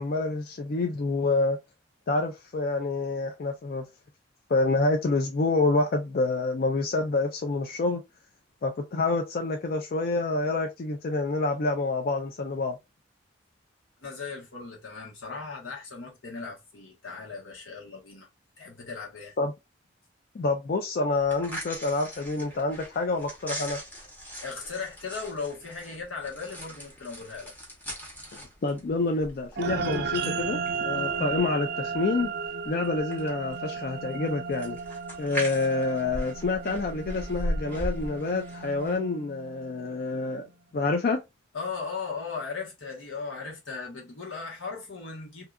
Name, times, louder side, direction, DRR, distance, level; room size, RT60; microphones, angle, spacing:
voice 1, 0.0-1.6 2.1-3.8 4.5-8.0 8.6-12.8 19.4-19.5 20.3-23.8 28.3-30.6 30.8-32.3 32.7-34.8 35.2-40.4 40.7-41.2, left 3 dB, 50° left, 0.4 m, -27 dB
voice 2, 14.0-18.3 18.6-19.3 24.4-27.5 41.5-45.4, left 4 dB, 85° left, 1.1 m, -37 dB
sound 1, 21.1-39.0, equal, 10° left, 0.7 m, -39 dB
sound 2, 29.6-40.2, right 5 dB, 55° right, 0.3 m, -34 dB
2.7 x 2.3 x 2.3 m
head